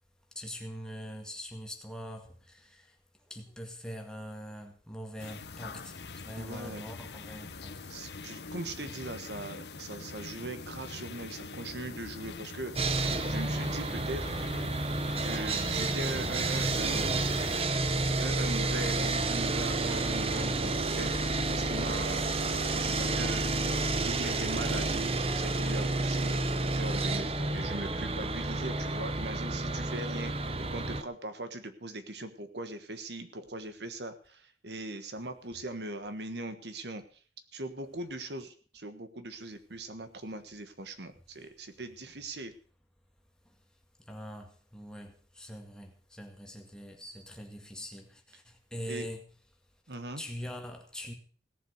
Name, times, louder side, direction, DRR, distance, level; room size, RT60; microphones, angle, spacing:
voice 1, 0.3-3.0 3.3-7.9 43.4-43.6 44.0-49.2 50.1-51.1, equal, 5° left, 2.0 m, -43 dB
sound 1, 5.2-17.6, left 4 dB, 75° left, 1.0 m, -44 dB
voice 2, 6.4-6.8 7.9-14.3 15.2-17.1 18.2-23.5 24.0-26.4 26.7-37.0 37.5-42.5 48.9-49.1 49.9-50.2, right 2 dB, 75° right, 1.5 m, -40 dB
Sawing, 12.8-31.0, right 2 dB, 35° right, 0.9 m, -30 dB
17.0 x 7.6 x 6.5 m
head